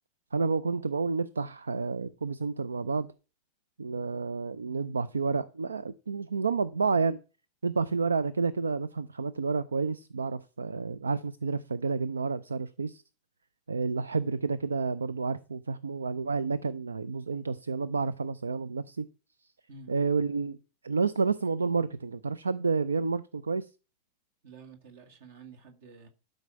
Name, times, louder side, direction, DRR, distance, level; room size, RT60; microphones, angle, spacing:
voice 1, 0.3-3.1 3.8-7.2 7.6-13.0 13.7-19.1 19.9-20.6 20.8-23.7, right 4 dB, 75° right, 0.5 m, -30 dB
voice 2, 24.4-26.1, right 4 dB, 55° right, 1.8 m, -50 dB
12.0 x 5.3 x 5.8 m
figure-of-eight pair, 90°, 0 cm